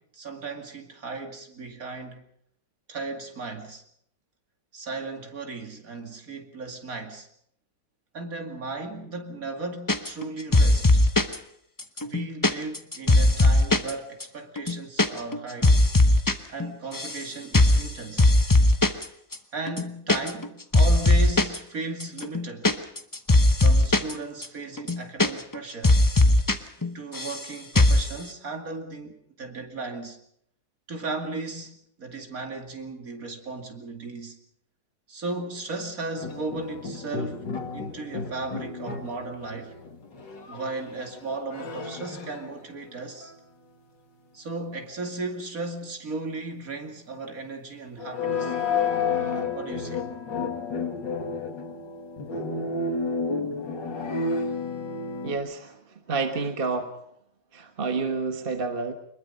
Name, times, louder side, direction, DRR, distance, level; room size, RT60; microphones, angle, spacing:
voice 1, 0.0-2.2 2.9-3.8 4.7-7.3 8.1-11.0 12.0-15.8 16.5-18.2 19.5-22.7 23.6-26.0 26.9-30.2 30.9-34.4 35.1-39.7 40.5-43.3 44.3-48.5 49.5-50.0, right 3 dB, 50° right, 2.7 m, -36 dB
sound 1, 9.9-10.3 10.5-11.4 11.8-13.9 14.2-14.3 14.6-15.1 15.3-16.3 16.6-17.2 17.5-17.9 18.2-19.0 19.3-19.4 19.7-20.5 20.7-21.6 22.0-24.1 24.4-24.5 24.8-25.6 25.8-26.5 26.8-27.4 27.7-28.1, left 2 dB, 20° left, 0.6 m, -19 dB
sound 2, 36.2-42.9 43.2-43.3 48.0-55.4, left 4 dB, 75° left, 3.0 m, -31 dB
voice 2, 55.2-55.7 56.1-56.9 57.5-58.9, right 4 dB, 30° right, 1.5 m, -28 dB
24.0 x 21.5 x 5.5 m
omnidirectional pair, 2.0 m